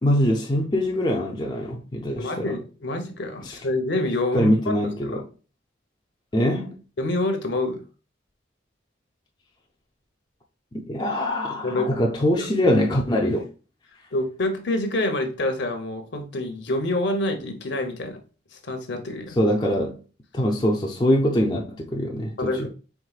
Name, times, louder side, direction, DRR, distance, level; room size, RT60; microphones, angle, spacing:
voice 1, 0.0-2.5 3.4-3.6 4.3-5.2 6.3-6.8 10.9-13.5 19.4-20.0 20.3-22.7, equal, 20° left, 0.4 m, -23 dB
voice 2, 2.2-4.7 5.0-5.2 7.0-7.8 11.6-11.9 12.4-12.5 14.1-18.2 18.6-19.4 22.4-22.7, left 1 dB, 65° left, 0.8 m, -27 dB
4.7 x 3.5 x 2.3 m
head